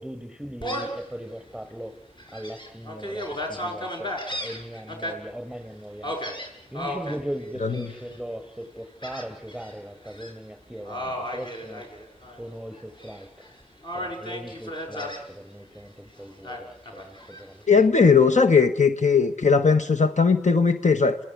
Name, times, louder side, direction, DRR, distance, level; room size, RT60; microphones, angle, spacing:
voice 1, 0.0-2.0 2.3-6.1 6.7-11.8 12.3-13.5 13.9-18.1, equal, ahead, 6.0 m, -39 dB
Gull seagull, 0.6-1.0 1.6-1.7 2.2-5.1 6.0-7.2 7.7-8.2 9.0-9.7 10.1-10.3 10.9-12.4 12.7-13.5 13.8-15.2 16.4-17.5, equal, 35° left, 6.6 m, -34 dB
voice 2, 17.7-21.2, left 5 dB, 65° left, 1.3 m, -18 dB
28.5 x 17.0 x 9.7 m
wide cardioid pair, 45°, 13 cm